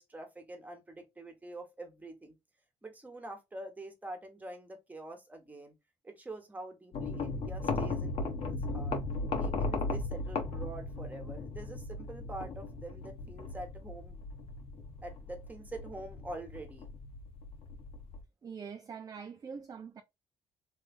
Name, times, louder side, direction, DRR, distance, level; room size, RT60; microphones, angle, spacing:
voice 1, 0.0-2.3 2.8-5.7 6.0-9.0 9.4-14.2 15.0-16.9, right 2 dB, 15° right, 1.2 m, -45 dB
sound 1, 6.9-18.2, left 3 dB, 55° left, 1.0 m, -37 dB
voice 2, 18.4-20.0, right 6 dB, 30° right, 0.4 m, -44 dB
3.2 x 3.2 x 2.4 m
cardioid pair, 110°, 12 cm